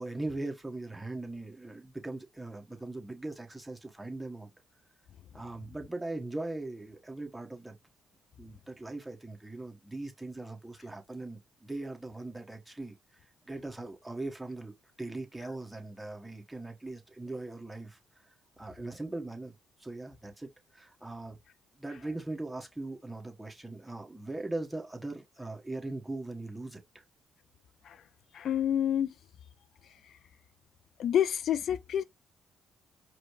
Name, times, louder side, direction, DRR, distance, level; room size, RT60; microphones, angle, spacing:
voice 1, 0.0-4.5 5.3-7.8 8.4-12.9 13.4-18.0 18.6-19.5 19.8-21.4 21.8-27.0, right 2 dB, 10° right, 1.6 m, -40 dB
voice 2, 28.3-29.1 31.0-32.0, left 10 dB, 60° left, 0.4 m, -28 dB
5.0 x 2.2 x 4.8 m
hypercardioid pair, 55°, 0 cm